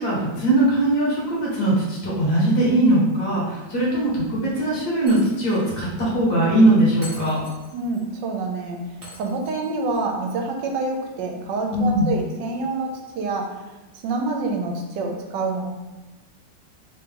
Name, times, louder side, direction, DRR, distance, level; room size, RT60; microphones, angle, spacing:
voice 1, 0.0-7.4 11.7-12.1, right 1 dB, 60° left, -6 dB, 1.8 m, -20 dB
Shatter, 5.1-5.7 6.0-6.1 7.0-8.0 9.0-10.0, left 1 dB, 25° right, 1.0 m, -43 dB
voice 2, 7.7-13.7 14.0-15.7, right 3 dB, 80° right, 2 dB, 1.3 m, -27 dB
3.7 x 2.9 x 3.5 m, 1.1 s
omnidirectional pair, 1.9 m